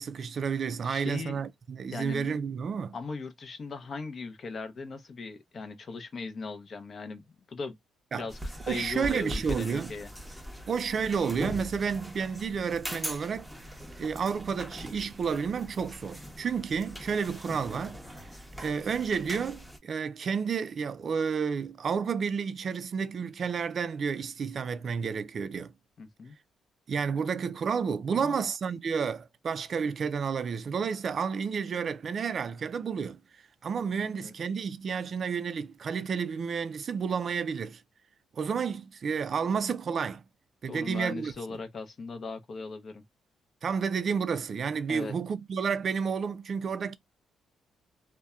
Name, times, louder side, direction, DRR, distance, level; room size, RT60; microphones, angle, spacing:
voice 1, 0.0-3.0 8.1-8.3 8.7-9.9 10.7-13.5 14.0-18.0 18.6-25.7 26.9-33.2 33.6-37.8 38.3-40.2 40.6-41.6 43.6-47.0, right 6 dB, 50° right, 0.3 m, -31 dB
voice 2, 0.8-1.4 1.9-2.3 2.9-7.8 8.1-8.4 8.7-10.1 26.0-26.3 28.1-28.4 34.0-34.3 40.7-43.0 44.9-45.1, left 4 dB, 45° left, 0.5 m, -39 dB
sound 1, 8.3-19.8, equal, ahead, 0.7 m, -41 dB
2.7 x 2.1 x 2.3 m
cardioid pair, 90°, 0 cm